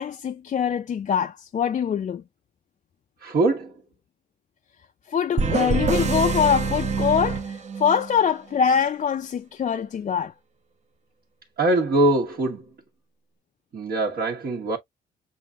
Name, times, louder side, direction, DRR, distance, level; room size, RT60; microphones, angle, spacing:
voice 1, 0.0-2.2 5.1-10.3, left 7 dB, 40° left, 0.4 m, -24 dB
voice 2, 3.2-3.8 11.6-12.6 13.7-14.8, right 2 dB, 55° right, 1.4 m, -22 dB
sound 1, 5.4-8.2, right 4 dB, 35° right, 0.8 m, -25 dB
7.5 x 2.5 x 2.4 m
cardioid pair, 90°, 20 cm